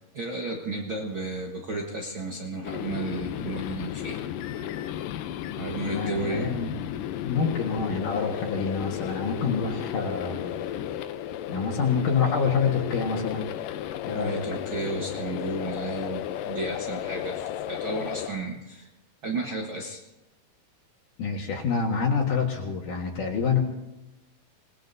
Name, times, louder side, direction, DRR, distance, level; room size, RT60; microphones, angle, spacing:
voice 1, 0.1-4.2 5.6-6.5 14.1-18.9 19.2-20.0, right 2 dB, 70° right, -1 dB, 1.1 m, -33 dB
sound 1, 2.6-18.3, left 11 dB, 80° left, 2.0 m, -34 dB
voice 2, 5.9-6.7 7.2-10.6 11.5-13.5 14.0-14.4 21.2-23.6, left 5 dB, 60° left, 0 dB, 2.9 m, -27 dB
27.5 x 19.5 x 2.7 m, 0.99 s
omnidirectional pair, 4.6 m